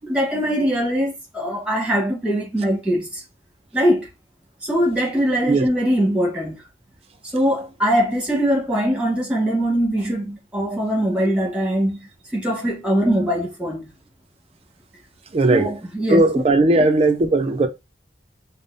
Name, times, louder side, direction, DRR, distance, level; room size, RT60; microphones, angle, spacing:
voice 1, 0.1-3.2 3.7-4.1 4.6-6.6 7.3-13.8 15.5-16.2, equal, 5° right, 1.3 m, -22 dB
voice 2, 15.3-15.7 16.1-17.7, right 2 dB, 35° right, 0.4 m, -17 dB
5.1 x 2.0 x 2.6 m
head